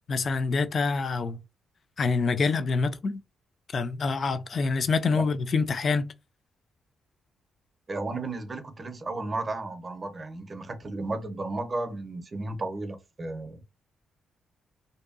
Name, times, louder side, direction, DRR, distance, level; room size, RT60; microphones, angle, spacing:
voice 1, 0.1-1.4 2.0-3.2 3.7-6.1, left 4 dB, 50° left, 0.4 m, -26 dB
voice 2, 7.9-13.6, right 2 dB, 35° right, 0.6 m, -34 dB
2.6 x 2.2 x 2.5 m
cardioid pair, 65°, 0 cm